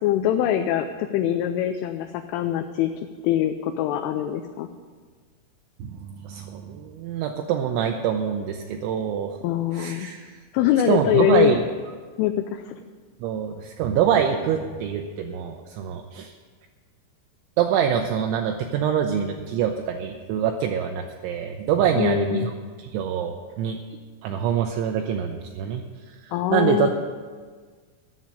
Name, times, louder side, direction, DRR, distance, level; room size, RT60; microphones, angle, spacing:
voice 1, 0.0-2.9 3.2-4.7 9.4-10.1 10.5-11.6 12.2-12.8 22.0-22.5 26.3-26.9, left 11 dB, 80° left, 6 dB, 2.9 m, -23 dB
voice 2, 5.8-9.4 9.7-10.3 10.9-11.6 13.2-16.3 17.6-22.5 22.8-23.8 24.2-26.9, right 8 dB, 85° right, 4 dB, 2.7 m, -25 dB
11.5 x 7.4 x 9.6 m, 1.5 s
omnidirectional pair, 6.0 m